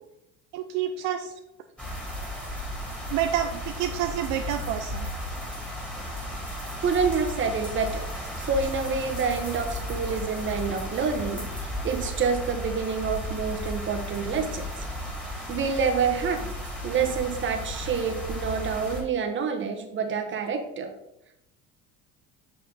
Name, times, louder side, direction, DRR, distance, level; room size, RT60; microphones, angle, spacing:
voice 1, 0.5-1.3 3.1-5.1, right 10 dB, 70° right, 5 dB, 0.7 m, -28 dB
sound 1, 1.8-19.0, equal, 5° left, 2.8 m, -34 dB
voice 2, 6.8-8.0 8.4-14.8 15.5-16.5 16.8-20.9, right 5 dB, 40° right, 5 dB, 1.5 m, -27 dB
7.0 x 6.2 x 4.1 m, 0.83 s
supercardioid pair, 105°, 31 cm